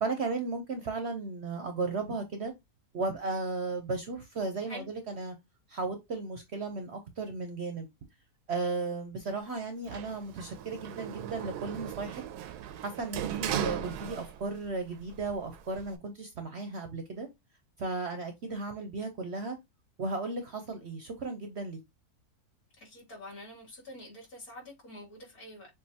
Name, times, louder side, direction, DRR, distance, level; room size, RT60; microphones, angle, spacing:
voice 1, 0.0-2.5 2.9-5.3 5.7-7.9 8.5-12.2 12.8-17.3 17.8-19.6 20.0-21.8, right 3 dB, 55° right, 0.8 m, -35 dB
Sliding door, 9.9-14.7 15.0-16.0, right 10 dB, 85° right, 1.1 m, -37 dB
voice 2, 22.8-25.7, left 1 dB, 65° left, 3.3 m, -46 dB
6.8 x 2.7 x 2.8 m
omnidirectional pair, 1.7 m